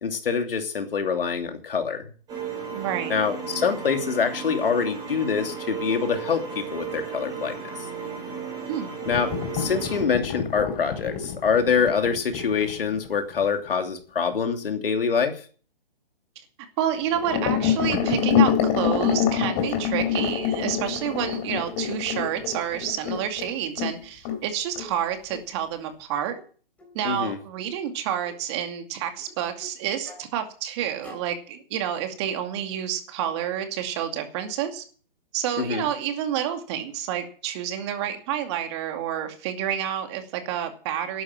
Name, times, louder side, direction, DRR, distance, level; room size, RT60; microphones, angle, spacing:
voice 1, 0.0-2.0 3.1-7.6 9.1-15.4 27.0-27.4 35.6-35.8, left 6 dB, 70° left, 6 dB, 3.0 m, -25 dB
sound 1, 2.3-10.0, right 6 dB, 15° right, 5.2 m, -34 dB
voice 2, 2.7-3.2 8.7-8.9 16.8-26.3 26.9-34.8 35.3-41.2, right 10 dB, 30° right, 6 dB, 2.4 m, -29 dB
sound 2, 9.1-13.7 17.1-24.0 24.2-24.4 24.8-24.9 25.3-25.4, left 8 dB, 25° left, 3.2 m, -26 dB
sound 3, 26.3-26.5 26.8-26.9 28.2-28.4 29.2-29.7 30.0-30.3 31.0-31.3, left 2 dB, 5° left, 3.5 m, -46 dB
12.5 x 10.5 x 7.3 m, 0.41 s
hypercardioid pair, 155°, 29 cm